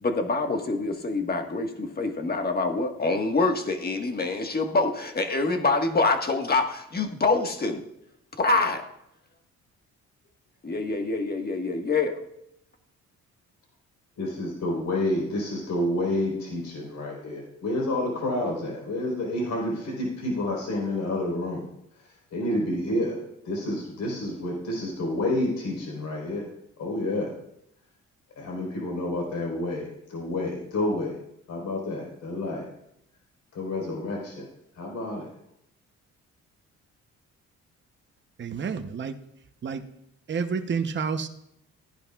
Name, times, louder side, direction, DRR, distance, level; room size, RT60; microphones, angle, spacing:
voice 1, 0.0-7.8 8.4-8.8 10.6-12.2, left 3 dB, 30° left, 5 dB, 1.6 m, -25 dB
voice 2, 14.2-21.6 22.3-23.2 23.4-26.4 26.8-27.3 28.4-31.1 31.5-32.7 33.5-34.5 34.7-35.3, left 1 dB, 65° left, -1 dB, 4.3 m, -29 dB
voice 3, 38.4-39.2 39.6-39.9 40.3-41.3, right 6 dB, 40° right, 7 dB, 0.9 m, -29 dB
15.0 x 11.0 x 2.4 m, 0.80 s
cardioid pair, 90°, 30 cm